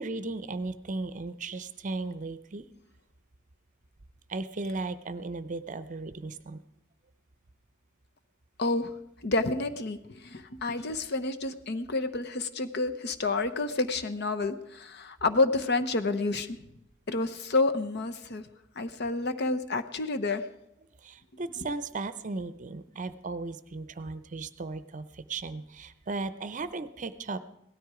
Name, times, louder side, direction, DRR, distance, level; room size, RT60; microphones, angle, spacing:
voice 1, 0.0-2.6 4.3-6.6 21.0-27.4, right 3 dB, 40° right, 13 dB, 0.6 m, -36 dB
voice 2, 8.6-8.9 9.2-16.6 17.1-18.4 18.8-20.4, left 3 dB, 55° left, 9 dB, 0.8 m, -29 dB
17.0 x 12.5 x 4.9 m, 0.81 s
head